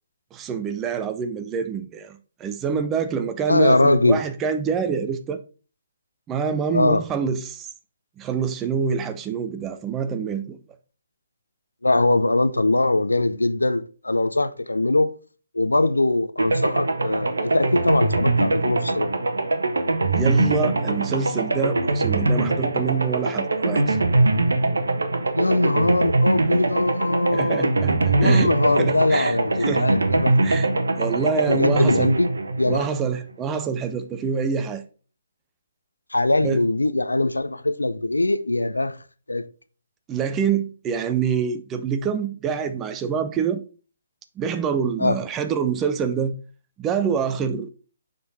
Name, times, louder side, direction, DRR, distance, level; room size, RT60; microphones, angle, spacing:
voice 1, 0.3-5.4 6.3-7.7 8.2-10.6 20.1-24.0 27.3-28.5 28.8-29.9 30.4-30.7 31.0-32.1 32.7-34.8 36.4-36.6 40.1-43.6 44.4-46.3 46.8-47.7, right 6 dB, 15° right, 0.5 m, -26 dB
voice 2, 3.5-4.2 6.7-7.0 11.8-15.1 15.5-19.1 25.3-27.7 28.2-30.4 31.5-32.9 36.1-39.0 39.3-39.5 45.0-45.2, left 2 dB, 75° left, 0.5 m, -21 dB
sound 1, 16.4-33.3, right 2 dB, 65° right, 0.8 m, -22 dB
6.7 x 3.8 x 4.1 m
figure-of-eight pair, 135°, 0 cm